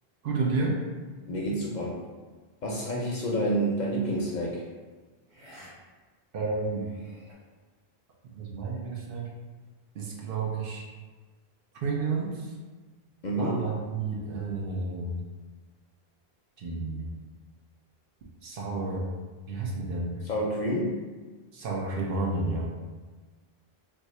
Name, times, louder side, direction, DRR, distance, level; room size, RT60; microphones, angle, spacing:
voice 1, 0.2-0.8 6.3-6.9 8.3-9.3 9.9-10.9 11.8-12.5 13.4-15.2 16.6-17.1 18.4-19.1 19.5-20.1 21.5-22.7, right 3 dB, 65° right, -2 dB, 0.8 m, -31 dB
voice 2, 1.2-2.0 2.6-4.7 13.2-13.6 20.2-21.0, right 1 dB, 55° left, -3 dB, 0.6 m, -28 dB
sound 1, 3.7-3.9 5.3-5.7 6.1-6.2 6.7-7.3, equal, 90° right, 1.1 m, -52 dB
2.5 x 2.4 x 4.1 m, 1.4 s
omnidirectional pair, 1.1 m